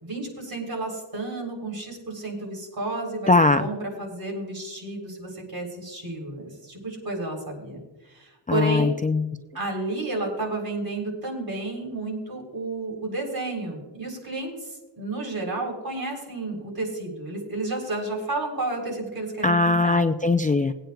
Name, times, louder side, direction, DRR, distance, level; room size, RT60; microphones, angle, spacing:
voice 1, 0.0-7.8 8.1-8.9 9.5-20.0, right 2 dB, 50° right, 0 dB, 3.7 m, -31 dB
voice 2, 3.3-3.6 8.5-9.3 19.4-20.7, left 3 dB, 20° left, 8 dB, 0.3 m, -20 dB
21.0 x 8.9 x 2.3 m, 1.2 s
wide cardioid pair, 70°, 47 cm